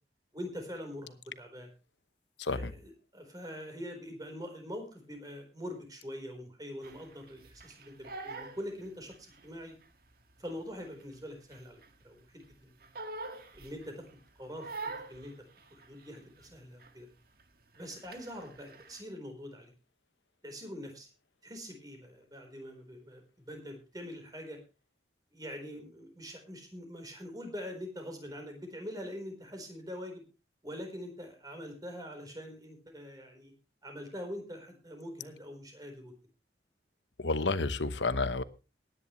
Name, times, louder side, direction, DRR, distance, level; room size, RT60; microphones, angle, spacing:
voice 1, 0.3-1.7 2.5-9.7 10.4-11.8 12.0-12.2 12.6-12.7 13.5-15.4 15.7-17.1 17.7-19.7 20.4-21.1 21.4-24.6 25.3-30.2 30.6-33.5 33.8-36.1, equal, 20° right, 4 dB, 4.2 m, -44 dB
voice 2, 2.4-2.7 37.2-38.4, left 3 dB, 85° left, 13 dB, 1.0 m, -30 dB
Crying sobbing, 6.8-9.5 9.8-12.1 12.4-14.1 14.6-16.5 16.8-17.1 17.4-19.0, right 3 dB, 55° right, 1.8 m, -45 dB
19.0 x 10.0 x 3.1 m, 0.30 s
head